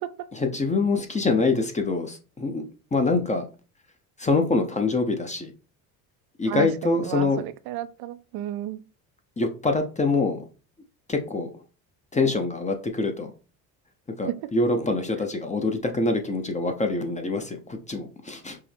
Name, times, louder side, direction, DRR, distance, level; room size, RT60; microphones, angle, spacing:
voice 1, 0.3-2.6 2.9-3.4 4.2-5.5 6.4-7.4 9.4-10.4 11.1-11.5 12.1-13.3 14.2-18.6, left 3 dB, 15° left, 0.6 m, -25 dB
voice 2, 6.5-8.8 14.3-14.4, right 12 dB, 55° right, 0.5 m, -32 dB
5.5 x 2.0 x 3.4 m
supercardioid pair, 80°, 46 cm